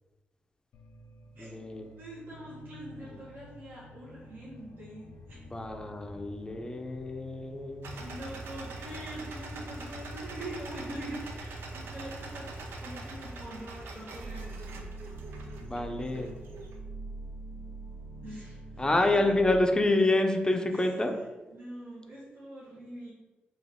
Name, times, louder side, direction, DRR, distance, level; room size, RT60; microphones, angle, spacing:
sound 1, 0.7-17.1, left 2 dB, 85° left, 0.4 m, -54 dB
voice 1, 1.3-1.9 3.0-3.1 5.3-8.0 15.6-16.3 18.8-21.2, left 2 dB, 20° left, 4 dB, 0.5 m, -28 dB
voice 2, 1.9-5.6 8.0-12.5 12.8-14.9 18.2-19.3 20.7-20.9 21.5-23.1, right 1 dB, 70° right, -8 dB, 1.3 m, -44 dB
sound 2, 7.8-16.8, right 2 dB, 85° right, 0.6 m, -42 dB
sound 3, 14.2-19.6, right 3 dB, 35° right, 1.5 m, -43 dB
4.1 x 2.5 x 3.6 m, 1.1 s
cardioid pair, 75°, 4 cm